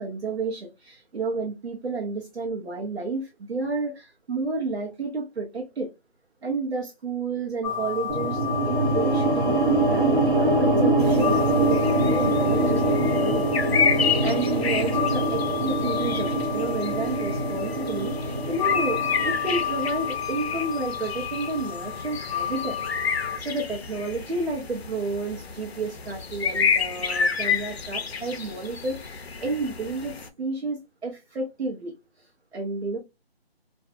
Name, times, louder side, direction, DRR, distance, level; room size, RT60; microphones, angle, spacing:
voice 1, 0.0-5.9 6.4-13.5 13.8-33.0, right 3 dB, 80° right, 0.8 m, -31 dB
sound 1, 7.6-23.4, left 9 dB, ahead, 0.6 m, -32 dB
sound 2, 8.1-20.3, right 1 dB, 55° right, 0.6 m, -24 dB
sound 3, 11.0-30.3, left 6 dB, 75° left, 0.5 m, -30 dB
2.5 x 2.3 x 2.4 m
hypercardioid pair, 180°, 32 cm